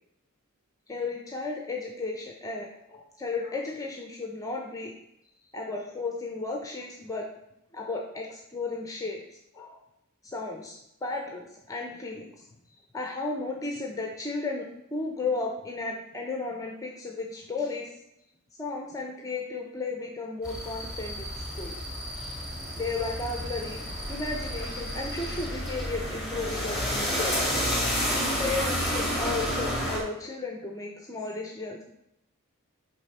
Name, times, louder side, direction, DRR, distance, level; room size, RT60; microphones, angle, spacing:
voice 1, 0.9-4.9 5.5-7.3 7.7-9.2 9.5-9.8 10.2-12.3 12.9-17.9 18.6-21.7 22.7-23.8 24.1-27.5 28.4-31.8, left 3 dB, 15° left, 1 dB, 0.6 m, -34 dB
sound 1, 20.4-30.0, equal, ahead, 1.9 m, -30 dB
7.7 x 3.6 x 5.4 m, 0.81 s
head